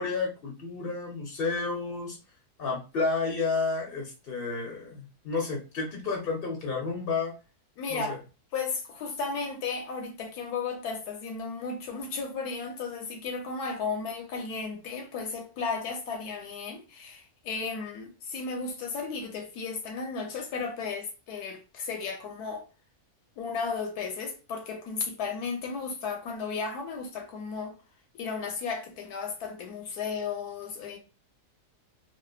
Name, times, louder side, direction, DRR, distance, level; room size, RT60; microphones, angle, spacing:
voice 1, 0.0-2.2 2.6-7.3 7.9-8.2, left 4 dB, 50° left, 0.8 m, -31 dB
voice 2, 7.8-8.2 8.5-22.7 23.4-27.8 28.1-31.0, left 4 dB, 80° left, 1.3 m, -34 dB
3.2 x 2.1 x 2.4 m
omnidirectional pair, 1.6 m